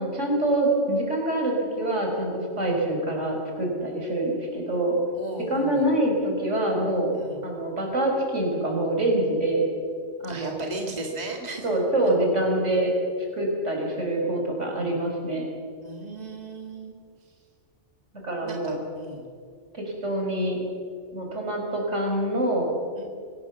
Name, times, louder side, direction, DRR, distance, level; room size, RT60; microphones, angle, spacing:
voice 1, 0.0-5.0 5.5-7.2 7.4-9.7 10.2-10.6 11.6-12.9 13.3-15.5 18.2-18.8 19.7-20.6 21.1-22.7, right 1 dB, 70° right, 0 dB, 5.4 m, -25 dB
voice 2, 5.1-5.9 7.1-7.4 10.3-11.6 15.8-17.0 18.4-19.2 23.0-23.1, right 2 dB, 35° right, 1 dB, 2.2 m, -36 dB
25.5 x 17.0 x 7.1 m, 2.2 s
omnidirectional pair, 1.3 m